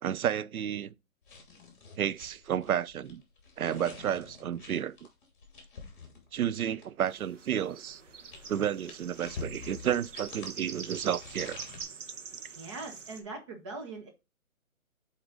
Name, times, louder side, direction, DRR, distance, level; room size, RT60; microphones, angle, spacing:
voice 1, 0.0-0.9 2.0-3.2 3.6-5.0 6.3-8.0 8.5-11.6, right 9 dB, 80° right, 0.6 m, -31 dB
sound 1, 1.2-7.0 7.9-11.8, left 4 dB, 35° left, 2.8 m, -47 dB
sound 2, 7.0-13.2, right 5 dB, 60° right, 1.2 m, -45 dB
voice 2, 12.5-14.1, right 3 dB, 20° right, 1.1 m, -41 dB
8.0 x 4.3 x 3.9 m
hypercardioid pair, 165°, 43 cm